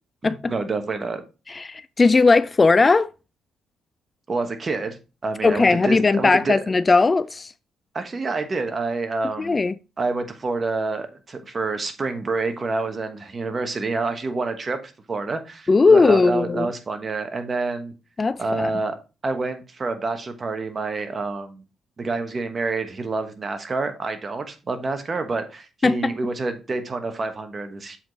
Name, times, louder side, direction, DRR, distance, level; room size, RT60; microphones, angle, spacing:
voice 1, 0.2-1.2 4.3-6.6 7.9-9.6 10.0-17.9 18.4-19.0 19.2-21.6 22.0-28.0, right 3 dB, 35° right, 1.2 m, -28 dB
voice 2, 1.5-3.1 5.4-7.5 9.4-9.7 15.7-16.7 18.2-18.7 25.8-26.1, left 3 dB, 30° left, 0.3 m, -18 dB
7.2 x 4.8 x 4.0 m
cardioid pair, 90°, 0 cm